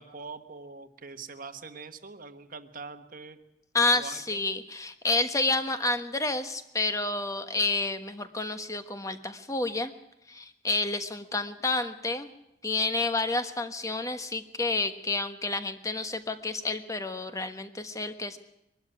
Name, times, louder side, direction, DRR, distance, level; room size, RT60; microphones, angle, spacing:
voice 1, 0.0-3.4 3.9-4.4, right 4 dB, 50° right, 8 dB, 1.4 m, -43 dB
voice 2, 3.7-9.9 10.3-12.3 12.6-18.4, left 2 dB, 20° left, 8 dB, 1.3 m, -29 dB
22.5 x 12.5 x 9.9 m, 0.87 s
head